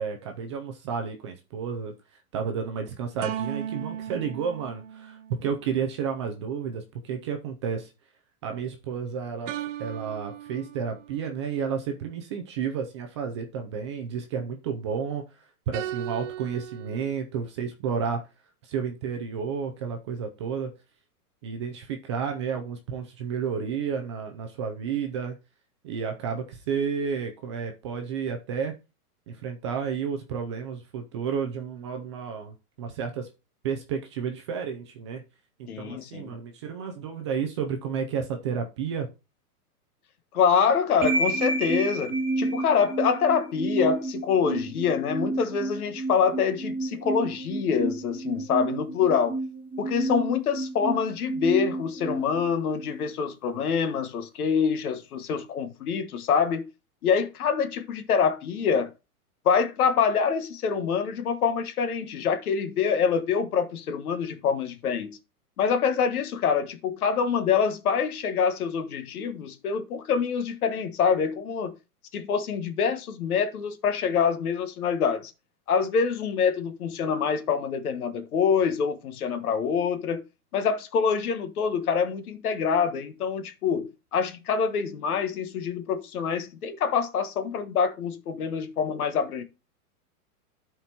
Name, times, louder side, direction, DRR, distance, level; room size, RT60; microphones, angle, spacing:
voice 1, 0.0-1.9 2.3-7.9 8.4-9.5 9.8-15.2 15.7-18.2 18.6-20.7 21.4-25.4 25.8-28.7 29.3-33.3 33.6-35.2 35.6-39.1, right 6 dB, 20° right, 0.4 m, -31 dB
sound 1, 3.2-5.7 9.5-11.3 15.7-17.1, right 11 dB, 55° right, 0.7 m, -36 dB
voice 2, 35.7-36.3 40.3-49.4 49.8-56.6 57.0-58.9 59.4-65.2 65.6-71.7 72.1-75.3 75.7-80.2 80.5-89.4, left 6 dB, 70° left, 1.4 m, -25 dB
sound 2, 41.0-53.1, right 2 dB, 5° right, 1.7 m, -30 dB
12.5 x 4.4 x 2.8 m
hypercardioid pair, 140°, 46 cm